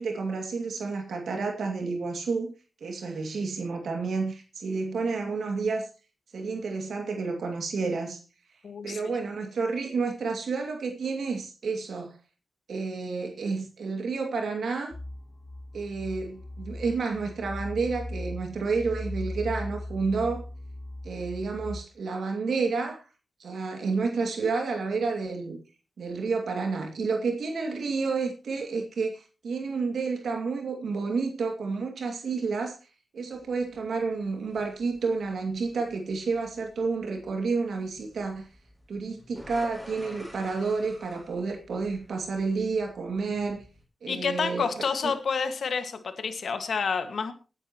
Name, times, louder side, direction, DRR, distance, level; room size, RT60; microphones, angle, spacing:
voice 1, 0.0-2.5 2.8-5.9 6.3-8.2 8.8-12.2 12.7-14.9 15.7-20.5 21.0-23.0 23.4-25.6 26.0-32.8 33.1-38.5 38.9-43.6 44.0-44.8, right 4 dB, 85° right, 2.4 m, -30 dB
voice 2, 8.6-9.0 44.1-47.3, left 5 dB, 75° left, 1.9 m, -29 dB
sound 1, 14.9-21.8, left 1 dB, 45° left, 2.6 m, -38 dB
sound 2, 33.3-43.8, equal, 5° left, 6.1 m, -52 dB
20.5 x 9.8 x 3.0 m
cardioid pair, 80°, 0 cm